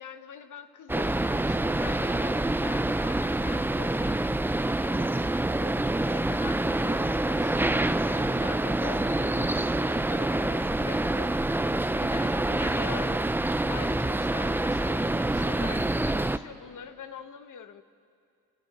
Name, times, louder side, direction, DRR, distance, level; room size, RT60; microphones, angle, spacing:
voice 1, 0.0-4.3 4.8-5.1 5.5-11.4 12.0-13.3 13.7-17.8, left 7 dB, 55° left, 11 dB, 1.0 m, -44 dB
sound 1, 0.9-16.4, right 1 dB, 5° right, 0.4 m, -26 dB
26.5 x 9.2 x 6.0 m, 2.3 s
supercardioid pair, 55°, 38 cm